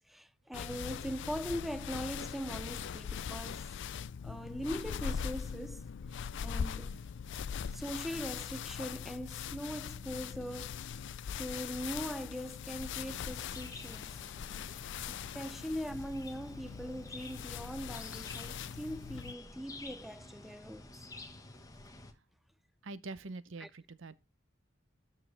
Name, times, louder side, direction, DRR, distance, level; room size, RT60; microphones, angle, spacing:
voice 1, 0.0-3.7 4.2-5.8 6.4-7.0 7.7-10.8 11.3-14.2 15.1-20.9 23.6-23.7, equal, ahead, 0.4 m, -41 dB
sound 1, 0.5-19.3, left 7 dB, 65° left, 0.4 m, -41 dB
sound 2, 13.0-22.1, left 2 dB, 15° left, 1.2 m, -50 dB
voice 2, 22.8-24.2, right 3 dB, 70° right, 0.7 m, -44 dB
13.0 x 4.7 x 3.3 m
head